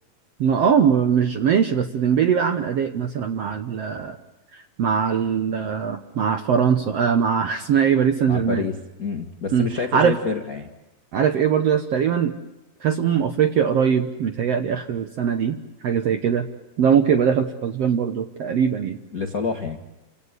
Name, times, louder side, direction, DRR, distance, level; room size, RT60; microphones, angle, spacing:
voice 1, 0.4-4.2 4.5-8.7 9.5-10.2 11.1-12.3 12.8-15.6 15.8-16.4 16.8-19.0, right 7 dB, 75° right, 8 dB, 1.4 m, -21 dB
voice 2, 8.3-10.7 19.1-19.8, left 5 dB, 75° left, 4 dB, 0.8 m, -27 dB
29.5 x 17.5 x 9.6 m, 1.0 s
omnidirectional pair, 4.3 m